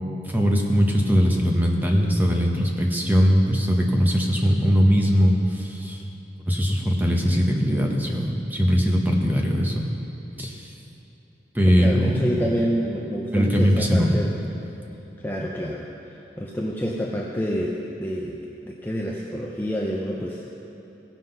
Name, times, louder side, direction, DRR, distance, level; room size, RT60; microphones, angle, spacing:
voice 1, 0.2-6.0 6.4-9.9 10.4-10.7 11.5-12.4 13.3-14.2, equal, 10° right, 0 dB, 1.0 m, -20 dB
voice 2, 11.6-14.3 15.2-15.9 16.4-20.4, equal, 10° left, -2 dB, 0.6 m, -28 dB
17.0 x 5.8 x 5.4 m, 3.0 s
head